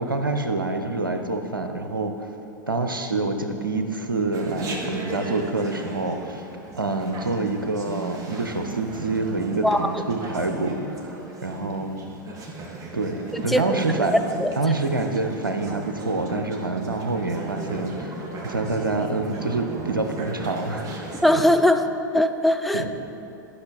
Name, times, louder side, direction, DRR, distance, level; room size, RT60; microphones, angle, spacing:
voice 1, 0.0-2.3 2.7-6.4 6.8-12.0 12.9-14.1 14.6-20.9 22.7-22.9, right 3 dB, 90° right, 6 dB, 0.7 m, -27 dB
Chatter, 4.3-21.4, right 2 dB, 35° right, 1.2 m, -36 dB
voice 2, 21.2-21.8 22.1-22.8, left 1 dB, ahead, 6 dB, 0.4 m, -19 dB
11.5 x 5.9 x 4.0 m, 2.8 s
figure-of-eight pair, 95°, 11 cm